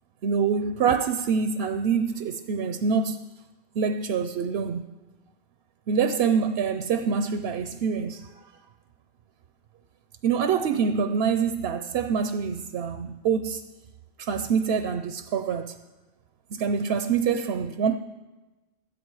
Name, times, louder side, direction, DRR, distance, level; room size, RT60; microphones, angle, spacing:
voice 1, 0.2-3.2 3.7-4.8 5.9-8.3 10.2-13.6 14.2-15.8 16.5-18.0, right 6 dB, 75° right, 0.9 m, -25 dB
17.5 x 12.5 x 4.7 m
omnidirectional pair, 1.1 m